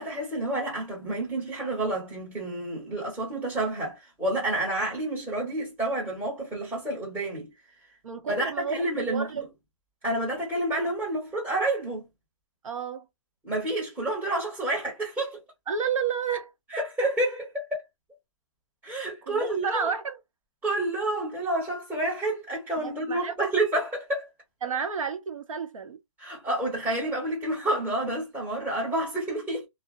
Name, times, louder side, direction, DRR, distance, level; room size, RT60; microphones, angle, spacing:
voice 1, 0.0-7.5 8.3-9.5 10.0-12.0 13.4-15.4 16.7-17.8 18.8-19.9 20.6-24.3 26.2-29.7, right 1 dB, 10° right, 1.3 m, -29 dB
voice 2, 8.0-9.4 12.6-13.1 15.7-16.5 19.3-20.2 22.8-23.3 24.6-26.0, right 6 dB, 85° right, 0.8 m, -31 dB
2.5 x 2.1 x 2.6 m
hypercardioid pair, 150°, 17 cm